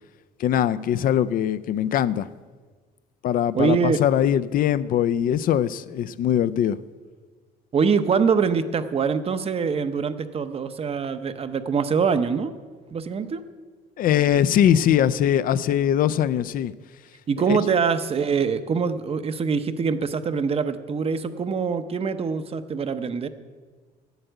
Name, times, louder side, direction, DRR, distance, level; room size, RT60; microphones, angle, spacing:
voice 1, 0.4-2.3 3.2-6.8 14.0-16.7 17.5-17.6, left 10 dB, 55° left, 16 dB, 0.4 m, -21 dB
voice 2, 3.5-4.0 7.7-12.5 12.9-13.4 17.3-23.3, right 5 dB, 35° right, 11 dB, 0.7 m, -24 dB
9.0 x 8.0 x 7.9 m, 1.4 s
cardioid pair, 110°, 17 cm